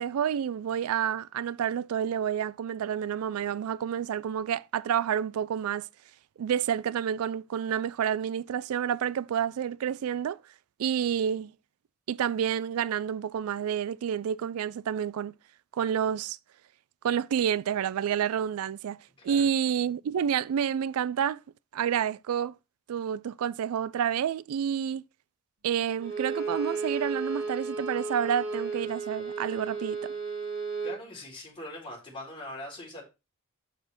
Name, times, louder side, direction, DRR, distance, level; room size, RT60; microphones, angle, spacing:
voice 1, 0.0-5.9 6.4-10.4 10.8-11.5 12.1-15.3 15.7-16.4 17.0-19.0 19.2-21.4 21.7-22.5 22.9-25.0 25.6-30.1, right 8 dB, 90° right, 0.3 m, -29 dB
voice 2, 19.2-19.5 30.8-33.0, left 1 dB, 25° left, 4.1 m, -42 dB
Bowed string instrument, 26.0-31.0, right 4 dB, 75° right, 2.1 m, -33 dB
7.5 x 6.6 x 4.3 m
head